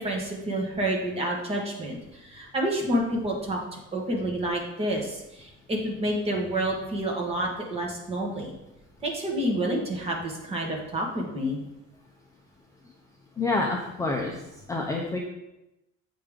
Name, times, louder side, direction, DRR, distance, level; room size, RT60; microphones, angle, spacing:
voice 1, 0.0-8.5 9.0-11.6, right 1 dB, 20° right, -1 dB, 1.3 m, -29 dB
voice 2, 13.4-14.4 14.7-15.2, left 3 dB, 10° left, 0 dB, 0.5 m, -27 dB
7.8 x 5.1 x 3.6 m, 0.92 s
cardioid pair, 175°, 29 cm